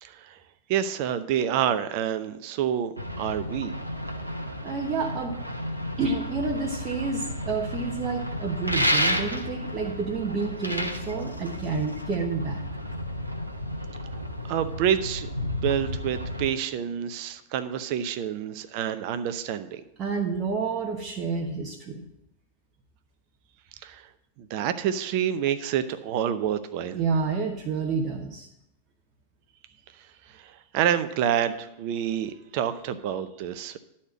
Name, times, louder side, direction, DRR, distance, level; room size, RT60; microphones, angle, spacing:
voice 1, 0.0-0.4 0.7-3.7 14.5-19.8 23.8-24.1 24.4-27.0 30.3-33.8, right 9 dB, 45° right, 11 dB, 0.6 m, -28 dB
sound 1, 3.0-16.5, left 1 dB, 85° right, 0.8 m, -34 dB
voice 2, 4.6-5.4 6.0-12.6 20.0-22.1 26.9-28.5, right 4 dB, 30° right, 0 dB, 1.2 m, -29 dB
sound 2, 8.6-9.6 10.4-12.1, equal, 90° left, 0.9 m, -26 dB
11.5 x 4.3 x 7.5 m, 0.82 s
figure-of-eight pair, 90°, 0 cm